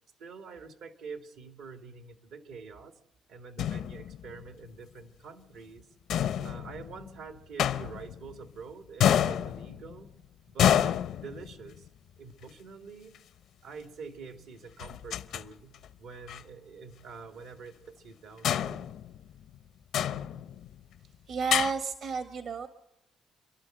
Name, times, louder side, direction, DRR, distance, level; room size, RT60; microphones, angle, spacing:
voice 1, 0.2-2.9 3.3-5.9 6.4-10.2 10.5-11.9 12.2-13.2 13.6-18.9, right 5 dB, 85° right, 8 dB, 2.2 m, -46 dB
sound 1, 3.6-4.4 6.1-7.1 7.6-8.5 9.0-10.1 10.6-11.9 13.2-13.3 14.8-15.4 15.7-15.9 16.3-16.4 18.4-19.6 19.9-20.8 21.5-21.7, left 10 dB, 80° left, 0.7 m, -28 dB
voice 2, 21.3-22.7, right 5 dB, 65° right, 11 dB, 1.4 m, -31 dB
29.5 x 11.5 x 7.8 m, 0.92 s
cardioid pair, 90°, 0 cm